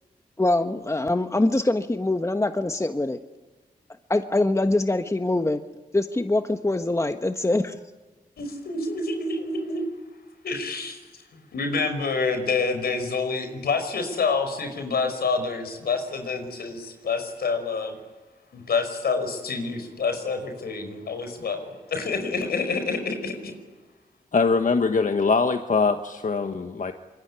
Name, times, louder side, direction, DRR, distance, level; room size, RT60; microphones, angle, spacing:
voice 1, 0.4-3.2 4.1-5.6 5.9-7.8, left 2 dB, 20° left, 7 dB, 1.4 m, -23 dB
voice 2, 8.4-9.9 10.4-11.0 11.3-17.9 18.5-23.5, left 4 dB, 85° left, 7 dB, 5.3 m, -27 dB
voice 3, 24.3-26.9, left 4 dB, 55° left, 7 dB, 1.4 m, -22 dB
25.5 x 22.5 x 9.9 m, 1.2 s
cardioid pair, 60°, 16 cm